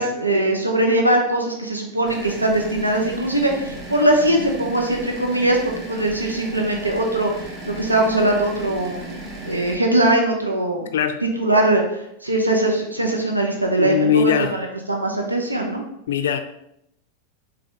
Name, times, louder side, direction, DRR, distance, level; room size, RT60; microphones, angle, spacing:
voice 1, 0.0-5.6 5.9-9.2 9.4-10.9 11.4-14.0 14.2-15.8, right 1 dB, 85° right, 1 dB, 0.6 m, -21 dB
sound 1, 2.0-9.8, right 1 dB, 30° right, 0.9 m, -35 dB
voice 2, 13.8-14.6 16.1-16.4, left 7 dB, 60° left, 8 dB, 0.4 m, -20 dB
3.8 x 2.7 x 3.9 m, 0.78 s
figure-of-eight pair, 90°, 0 cm